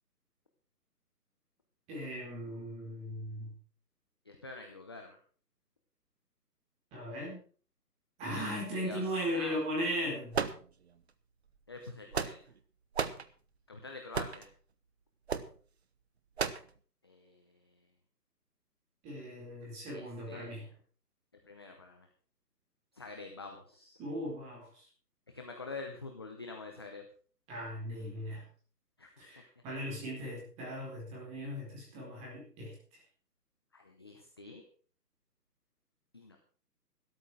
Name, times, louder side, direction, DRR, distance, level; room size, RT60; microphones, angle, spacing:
voice 1, 1.9-3.5 6.9-7.4 8.2-10.4 19.0-20.7 24.0-24.8 27.5-28.4 29.2-32.7, equal, 15° right, -2 dB, 4.4 m, -38 dB
voice 2, 4.3-5.2 8.8-9.9 11.7-12.4 13.7-14.5 17.0-17.6 19.9-20.7 21.4-22.1 22.9-24.0 25.3-27.0 29.0-29.1 33.7-34.6 36.1-36.4, left 3 dB, 15° left, 3 dB, 0.7 m, -46 dB
sound 1, 10.3-11.1 11.8-12.6 12.9-13.3 14.1-14.5 15.3-15.5 16.4-16.7, right 6 dB, 40° right, 1.0 m, -34 dB
13.0 x 12.5 x 4.9 m, 0.43 s
hypercardioid pair, 160°, 48 cm